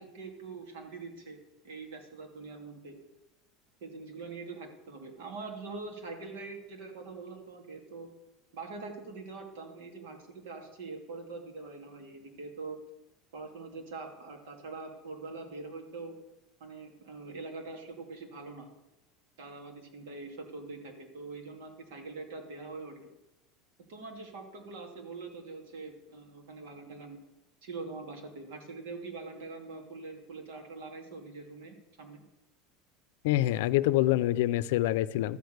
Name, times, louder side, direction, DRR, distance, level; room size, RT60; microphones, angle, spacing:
voice 1, 0.0-1.4 1.6-3.0 3.8-8.1 8.5-12.8 13.3-16.1 16.6-18.7 19.4-23.1 23.9-27.2 27.6-32.2, right 3 dB, 75° right, 3 dB, 2.9 m, -43 dB
voice 2, 33.2-35.4, left 15 dB, 70° left, 17 dB, 0.5 m, -26 dB
13.0 x 6.6 x 8.0 m, 0.98 s
supercardioid pair, 165°, 0 cm